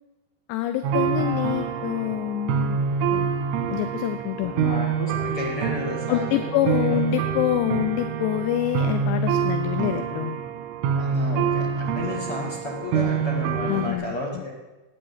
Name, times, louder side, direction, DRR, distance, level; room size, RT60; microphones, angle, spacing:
voice 1, 0.5-2.8 3.1-3.3 3.7-4.5 6.1-10.4 13.7-14.4, left 14 dB, 80° left, 10 dB, 2.6 m, -26 dB
sound 1, 0.8-13.9, right 7 dB, 90° right, 3.9 m, -26 dB
voice 2, 4.4-7.0 10.9-14.5, left 2 dB, 50° left, -2 dB, 1.7 m, -32 dB
12.5 x 9.0 x 8.6 m, 1.1 s
omnidirectional pair, 5.5 m